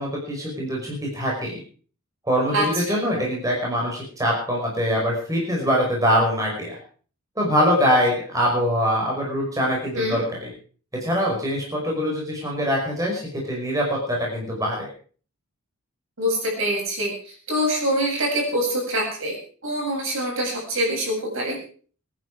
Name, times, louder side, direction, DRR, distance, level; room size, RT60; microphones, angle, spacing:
voice 1, 0.0-1.6 2.3-6.8 7.4-10.5 11.0-14.9, equal, 15° right, -2 dB, 5.4 m, -23 dB
voice 2, 2.5-3.0 9.9-10.2 16.2-19.4 19.6-21.6, equal, 60° right, 0 dB, 7.8 m, -25 dB
24.0 x 10.5 x 4.8 m, 0.43 s
head